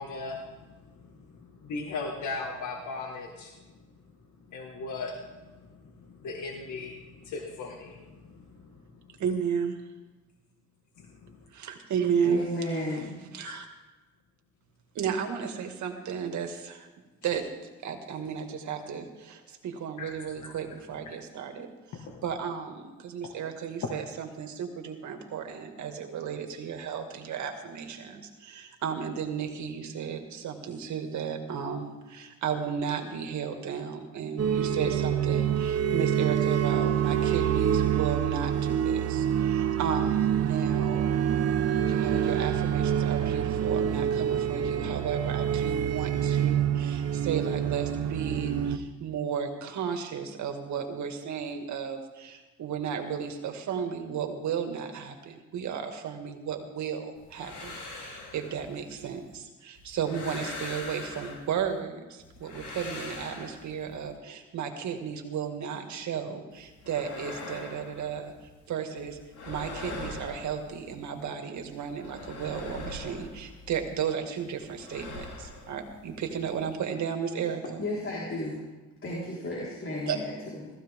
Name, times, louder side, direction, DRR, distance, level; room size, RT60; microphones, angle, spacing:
voice 1, 0.0-3.5 4.5-8.8 13.4-13.5 20.0-20.1 21.9-22.2 23.8-23.9 77.6-77.7, left 3 dB, 70° left, 1 dB, 1.9 m, -38 dB
voice 2, 9.2-9.7 11.5-12.5 13.3-13.7 14.9-16.9 17.2-17.4 17.8-41.1 41.8-68.3 68.7-69.2 69.5-77.8 80.1-80.2, right 7 dB, 70° right, 5 dB, 2.1 m, -34 dB
voice 3, 12.2-13.2 77.8-78.6 79.0-80.7, left 1 dB, 45° left, -6 dB, 4.6 m, -33 dB
sound 1, 34.4-48.8, right 9 dB, 55° right, 1.0 m, -26 dB
sound 2, 57.2-59.3 59.8-61.8 62.2-64.1 66.5-68.7 69.0-71.2 71.5-74.1 74.4-76.7, left 2 dB, 90° left, 4.9 m, -43 dB
17.5 x 14.5 x 3.7 m, 1.2 s
cardioid pair, 90°, 30 cm